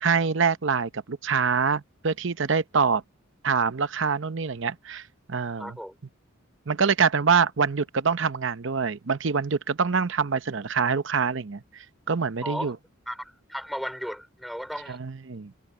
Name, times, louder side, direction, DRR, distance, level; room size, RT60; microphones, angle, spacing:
voice 1, 0.0-3.0 3.4-5.0 5.3-5.8 6.7-11.6 12.1-12.8 14.9-15.5, right 5 dB, 60° right, 0.7 m, -25 dB
voice 2, 5.6-5.9 12.4-12.7 13.1-15.0, equal, ahead, 3.3 m, -35 dB
head